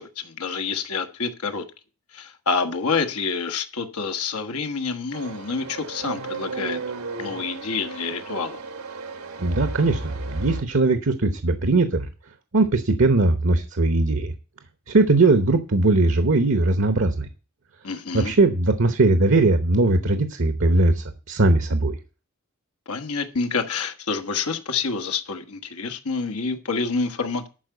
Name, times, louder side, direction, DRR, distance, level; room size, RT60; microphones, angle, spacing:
voice 1, 0.0-1.6 2.1-6.8 7.2-8.6 17.8-18.3 22.9-27.5, left 4 dB, 85° left, 7 dB, 1.3 m, -27 dB
sound 1, 5.1-10.6, right 3 dB, 80° right, 1.4 m, -34 dB
voice 2, 9.4-12.1 12.5-14.3 14.9-17.3 18.1-21.9, right 2 dB, 60° right, 10 dB, 1.0 m, -20 dB
11.5 x 4.7 x 8.1 m, 0.34 s
head